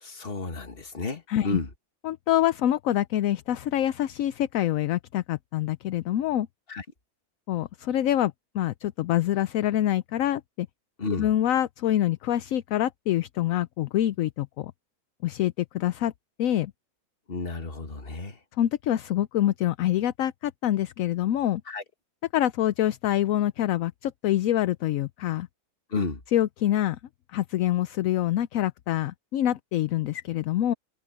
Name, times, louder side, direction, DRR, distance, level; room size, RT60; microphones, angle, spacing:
voice 1, 0.0-1.7 6.7-6.8 11.0-11.3 17.3-18.4 21.7-21.8 25.9-26.2, left 3 dB, 40° left, 1.9 m, -32 dB
voice 2, 1.3-1.6 2.0-6.5 7.5-10.7 11.2-14.7 15.2-16.1 16.4-16.7 18.6-21.6 22.3-25.5 26.3-27.0 27.3-30.7, left 12 dB, 70° left, 1.0 m, -26 dB
omnidirectional pair, 1.6 m